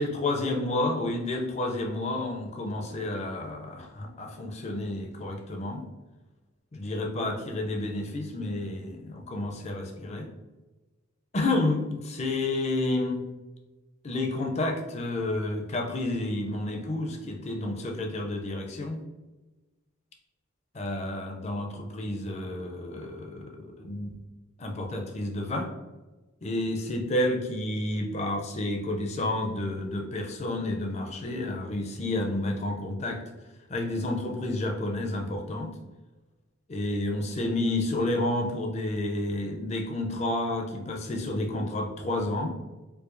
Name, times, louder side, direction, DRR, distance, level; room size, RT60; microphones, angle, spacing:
voice 1, 0.0-5.8 6.7-10.3 11.3-13.2 14.0-19.0 20.7-24.1 24.6-25.7 26.4-33.2 33.7-35.7 36.7-42.5, left 2 dB, 30° left, 2 dB, 0.5 m, -30 dB
4.6 x 2.3 x 2.6 m, 1.1 s
head